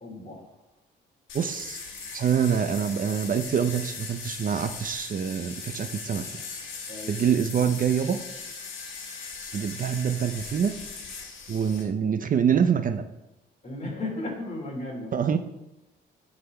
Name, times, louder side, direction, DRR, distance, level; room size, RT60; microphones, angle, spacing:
voice 1, 0.0-0.6 6.9-7.2 13.6-15.3, left 2 dB, 35° left, -1 dB, 3.1 m, -35 dB
sound 1, 1.3-11.8, left 5 dB, 75° left, 1.7 m, -39 dB
voice 2, 1.3-1.8 2.1-6.3 7.1-8.2 9.5-10.8 11.5-13.0 15.1-15.4, right 7 dB, 45° right, 8 dB, 0.6 m, -25 dB
9.7 x 4.1 x 5.4 m, 0.96 s
cardioid pair, 90°, 20 cm